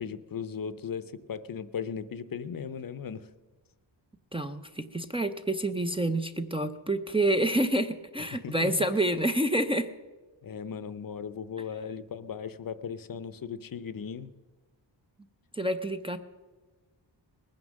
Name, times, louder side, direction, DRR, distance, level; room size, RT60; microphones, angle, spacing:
voice 1, 0.0-3.3 8.3-8.7 10.4-14.3, left 7 dB, 50° left, 14 dB, 0.6 m, -37 dB
voice 2, 4.3-9.9 15.5-16.2, right 1 dB, 10° right, 5 dB, 0.5 m, -28 dB
20.0 x 9.6 x 6.3 m, 1.3 s
wide cardioid pair, 170°, 45 cm